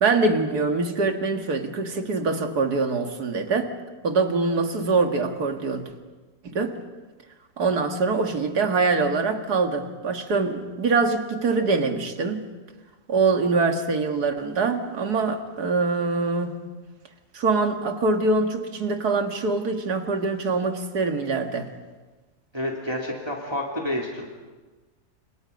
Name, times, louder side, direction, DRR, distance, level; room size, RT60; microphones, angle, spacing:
voice 1, 0.0-3.7 4.0-5.9 6.4-6.7 7.6-12.4 13.1-16.5 17.3-21.7, right 3 dB, 80° right, 5 dB, 2.4 m, -24 dB
voice 2, 22.5-24.3, left 1 dB, 15° right, -1 dB, 3.0 m, -29 dB
30.0 x 28.0 x 5.3 m, 1.2 s
omnidirectional pair, 1.7 m